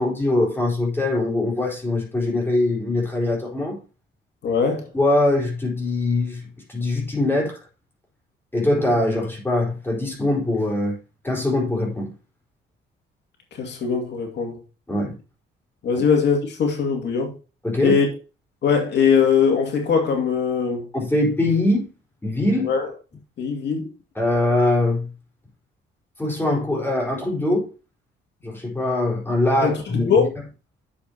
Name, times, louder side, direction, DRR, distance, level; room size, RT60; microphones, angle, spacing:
voice 1, 0.0-3.8 4.9-6.4 6.7-7.6 8.5-11.0 11.2-12.1 14.9-15.2 17.6-18.0 20.9-21.9 22.2-22.7 24.1-25.1 26.2-27.7 28.4-30.3, left 2 dB, 10° left, 4.5 m, -22 dB
voice 2, 4.4-4.9 13.5-14.6 15.8-17.3 17.8-18.1 18.6-20.9 22.6-22.9 23.4-23.9 29.6-30.2, left 6 dB, 60° left, 2.5 m, -21 dB
10.0 x 6.9 x 2.9 m
cardioid pair, 90°, 20 cm